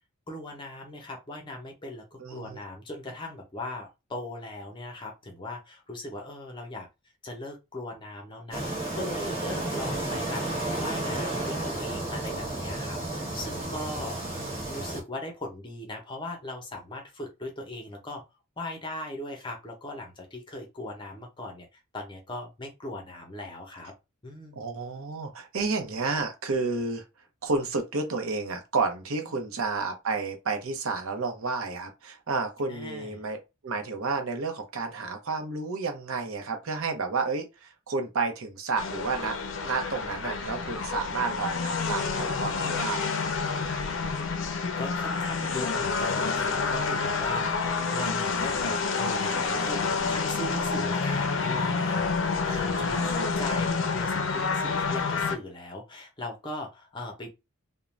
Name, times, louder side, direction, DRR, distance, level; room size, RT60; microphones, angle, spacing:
voice 1, 0.3-6.9 7.2-18.2 18.6-23.9 24.2-24.6 29.3-29.4 32.7-33.2 44.0-44.2 44.8-57.3, left 2 dB, 20° left, 0.7 m, -39 dB
voice 2, 2.2-2.6 14.1-14.5 24.6-27.0 27.4-39.4 39.6-43.3 47.3-47.5 52.9-53.1, right 4 dB, 80° right, 0.7 m, -31 dB
sound 1, 8.5-15.0, right 2 dB, 25° right, 1.0 m, -32 dB
sound 2, 38.8-55.4, left 4 dB, 60° left, 0.4 m, -28 dB
2.4 x 2.1 x 3.1 m
head